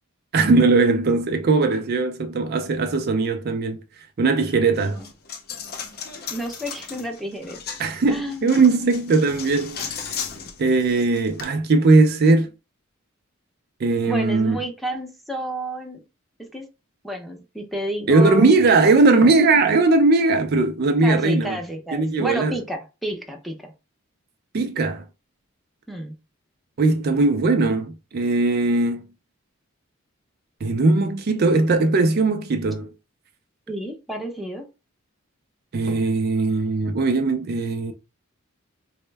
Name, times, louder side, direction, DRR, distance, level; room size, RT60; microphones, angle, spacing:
voice 1, 0.3-3.8 4.2-5.0 7.8-9.9 10.6-12.5 13.8-14.6 18.1-21.6 21.9-22.5 24.5-25.0 26.8-29.1 30.6-32.9 35.7-37.9, right 3 dB, 45° right, 0.4 m, -19 dB
Coin (dropping), 4.7-11.4, left 7 dB, 45° left, 0.6 m, -36 dB
voice 2, 6.3-7.6 8.1-8.9 14.0-16.0 16.4-16.6 17.0-18.5 21.0-23.7 25.9-26.1 33.7-34.7, right 1 dB, ahead, 0.6 m, -30 dB
4.2 x 2.1 x 3.2 m
head